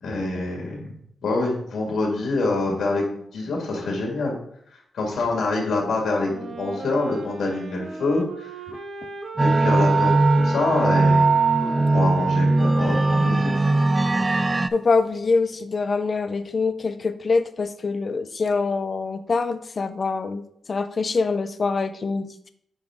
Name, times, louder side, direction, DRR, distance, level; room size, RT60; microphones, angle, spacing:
voice 1, 0.0-4.4 4.9-8.6 9.3-11.3 11.9-13.5, left 2 dB, 75° left, 0 dB, 2.0 m, -26 dB
Wind instrument woodwind instrument, 6.2-14.6, right 3 dB, 55° right, 0.8 m, -38 dB
sound 1, 9.4-14.7, right 3 dB, 20° right, 0.4 m, -19 dB
voice 2, 14.7-22.5, left 4 dB, 35° left, 11 dB, 0.5 m, -24 dB
9.9 x 3.9 x 3.6 m, 0.69 s
wide cardioid pair, 140°, 0 cm